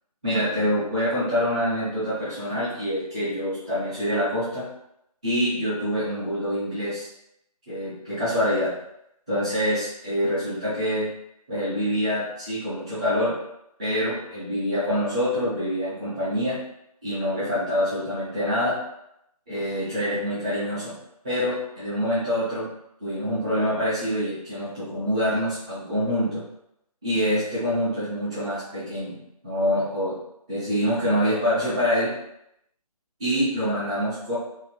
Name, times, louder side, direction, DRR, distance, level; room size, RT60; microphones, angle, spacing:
voice 1, 0.2-4.6 5.2-7.1 7.7-8.7 9.3-11.1 11.5-13.4 13.8-16.6 17.0-18.8 19.5-20.9 21.2-22.7 23.0-26.4 27.0-30.2 30.5-32.1 33.2-34.4, equal, 10° right, -15 dB, 0.7 m, -25 dB
2.7 x 2.4 x 3.0 m, 0.81 s
figure-of-eight pair, 165°, 20 cm